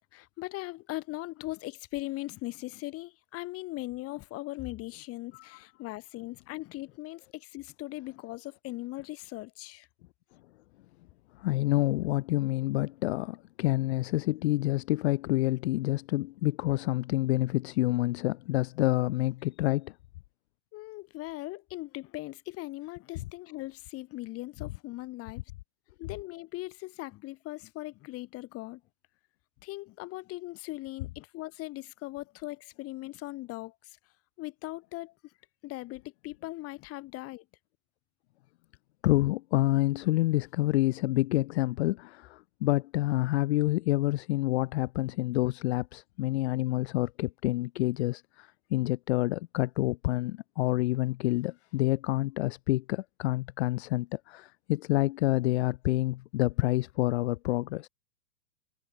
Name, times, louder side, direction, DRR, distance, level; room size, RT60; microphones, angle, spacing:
voice 1, 0.1-9.9 20.7-25.4 26.0-28.8 29.6-34.0 34.4-35.1 35.6-37.4, left 19 dB, 35° left, 2.8 m, -39 dB
voice 2, 11.4-19.9 39.0-57.9, left 18 dB, 50° left, 1.3 m, -28 dB
figure-of-eight pair, 105°, 41 cm